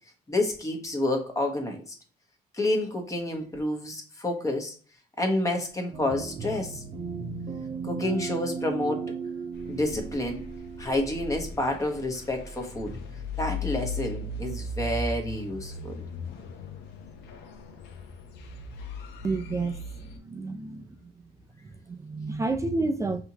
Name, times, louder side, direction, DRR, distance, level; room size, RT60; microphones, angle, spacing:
voice 1, 0.3-1.9 2.6-4.7 5.2-6.8 7.8-9.1 9.7-10.4 10.8-12.9 13.4-16.0, left 1 dB, 20° left, 1.1 m, -29 dB
sound 1, 5.9-12.5, right 5 dB, 40° right, 1.0 m, -37 dB
sound 2, 9.5-20.2, left 2 dB, 85° left, 0.7 m, -38 dB
voice 2, 19.2-21.1 21.6-23.2, right 3 dB, 20° right, 0.4 m, -30 dB
5.4 x 2.9 x 2.8 m
cardioid pair, 110°, 17 cm